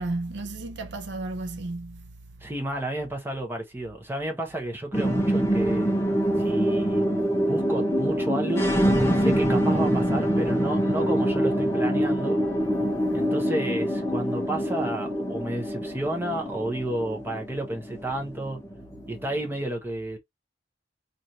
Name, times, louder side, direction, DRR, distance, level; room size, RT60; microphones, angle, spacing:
voice 1, 0.0-2.1, right 2 dB, 65° right, 0.6 m, -33 dB
voice 2, 2.4-5.9 6.4-7.1 7.5-8.7 9.2-12.4 13.1-18.6 19.1-20.2, right 1 dB, 10° right, 0.9 m, -31 dB
sound 1, 4.9-19.5, equal, 15° left, 0.7 m, -25 dB
3.1 x 2.6 x 4.0 m
head